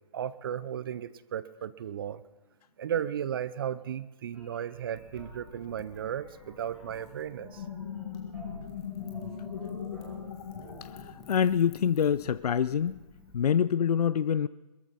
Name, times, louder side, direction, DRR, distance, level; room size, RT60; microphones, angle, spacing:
voice 1, 0.1-2.2 2.8-7.6, right 9 dB, 35° right, 17 dB, 0.5 m, -35 dB
sound 1, 4.3-10.7, right 1 dB, 10° right, 4.2 m, -51 dB
Wind / Fire, 4.9-13.5, left 3 dB, 15° left, 1.9 m, -54 dB
sound 2, 7.3-11.8, left 8 dB, 45° left, 1.1 m, -40 dB
voice 2, 11.0-13.0 13.3-14.5, left 8 dB, 75° left, 15 dB, 0.5 m, -26 dB
22.0 x 14.0 x 4.1 m, 1.1 s
hypercardioid pair, 155°, 20 cm